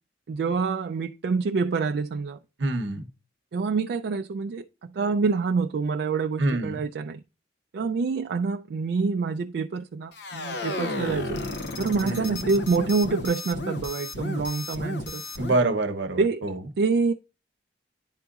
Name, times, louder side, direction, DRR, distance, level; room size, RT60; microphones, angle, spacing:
voice 1, 0.3-2.4 3.5-4.6 4.9-7.2 7.7-11.4 11.8-15.5 16.2-16.4 16.8-17.1, right 4 dB, 60° right, 0.3 m, -26 dB
voice 2, 2.6-3.1 6.4-6.8 12.0-12.4 15.4-16.6, right 2 dB, 75° right, 0.9 m, -26 dB
sound 1, 10.1-15.6, left 2 dB, 60° left, 0.7 m, -33 dB
10.5 x 3.9 x 2.3 m
head